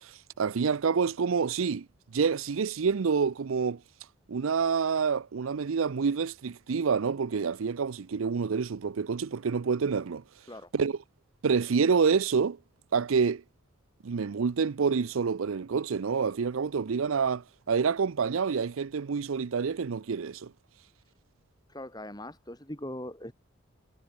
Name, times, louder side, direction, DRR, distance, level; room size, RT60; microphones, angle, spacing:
voice 1, 0.0-1.9 2.1-3.8 4.3-10.2 10.7-11.0 11.4-12.6 12.9-13.4 14.0-20.5, right 5 dB, 90° right, 0.5 m, -27 dB
voice 2, 21.7-23.3, left 1 dB, 20° left, 4.7 m, -40 dB
head